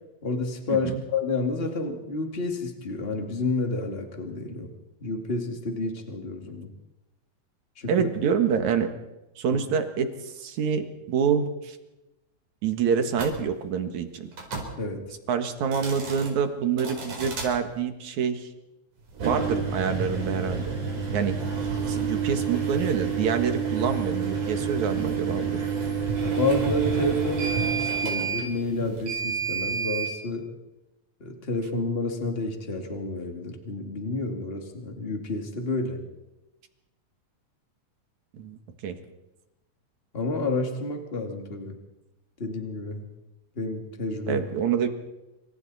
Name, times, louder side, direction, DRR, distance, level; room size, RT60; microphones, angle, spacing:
voice 1, 0.2-4.7 5.0-6.7 7.8-8.1 9.5-9.6 14.8-15.0 26.2-30.5 31.2-36.0 40.1-41.7 42.4-43.1 43.6-44.5, left 2 dB, 20° left, 3 dB, 2.3 m, -30 dB
voice 2, 7.9-8.9 9.4-11.8 12.6-14.3 15.3-18.5 19.2-20.8 21.1-21.4 21.9-25.6 38.4-38.6 38.8-39.0 44.3-44.9, right 7 dB, 70° right, 7 dB, 3.0 m, -26 dB
sound 1, 13.1-13.4 14.3-14.7 15.6-16.3 16.8-17.5 19.1-30.1, right 6 dB, 85° right, 5.8 m, -29 dB
27.0 x 25.5 x 4.2 m, 1.0 s
omnidirectional pair, 3.5 m